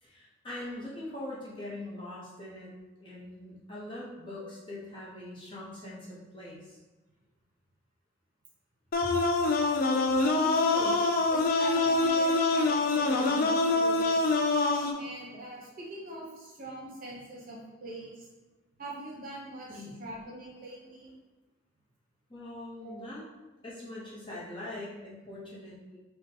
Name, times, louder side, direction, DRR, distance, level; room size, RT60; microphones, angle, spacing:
voice 1, 0.0-2.7 3.0-6.8 9.0-9.1 19.7-19.9 22.3-23.2 23.6-26.0, left 1 dB, 25° left, -7 dB, 0.9 m, -42 dB
sound 1, 8.9-14.9, left 3 dB, 45° left, 0.3 m, -25 dB
voice 2, 10.3-14.3 15.0-18.3 18.8-21.1 22.8-23.1 24.3-24.4, right 1 dB, 45° right, -3 dB, 0.9 m, -42 dB
5.8 x 2.3 x 2.7 m, 1.1 s
head